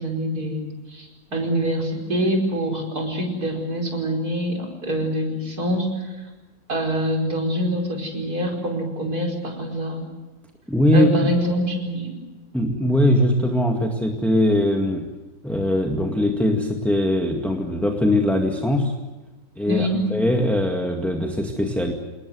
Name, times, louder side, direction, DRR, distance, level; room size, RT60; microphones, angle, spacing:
voice 1, 0.0-6.1 6.7-10.1 10.9-12.2 19.7-20.0, equal, 50° right, 1 dB, 5.5 m, -25 dB
voice 2, 10.7-11.3 12.5-15.1 15.4-18.9 19.6-21.9, left 1 dB, ahead, 1 dB, 1.8 m, -21 dB
27.5 x 20.0 x 7.9 m, 1.1 s
omnidirectional pair, 2.1 m